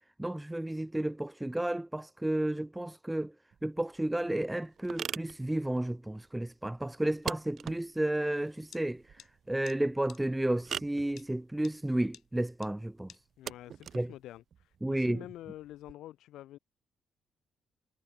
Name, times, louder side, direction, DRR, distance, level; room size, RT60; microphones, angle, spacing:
voice 1, 0.2-3.3 3.6-9.0 9.5-13.1 13.9-14.1 14.8-15.2, right 1 dB, 10° right, 2.1 m, -32 dB
sound 1, 3.5-15.9, right 8 dB, 55° right, 2.1 m, -44 dB
sound 2, 8.7-8.8 9.2-9.3 9.7-9.8 10.1-10.2 11.2-11.3 11.6-11.8 12.1-12.2 12.6-12.7 13.1-13.2, left 10 dB, 70° left, 5.8 m, -51 dB
voice 2, 13.4-16.6, left 14 dB, 85° left, 3.9 m, -47 dB
cardioid pair, 90°, 0 cm